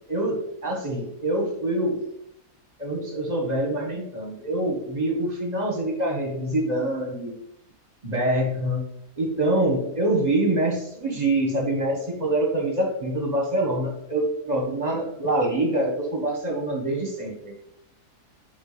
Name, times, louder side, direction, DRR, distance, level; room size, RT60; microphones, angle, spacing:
voice 1, 0.1-2.0 2.8-7.3 8.0-8.8 9.2-17.5, right 1 dB, 25° right, -1 dB, 1.7 m, -25 dB
11.5 x 4.1 x 3.5 m, 0.76 s
omnidirectional pair, 1.8 m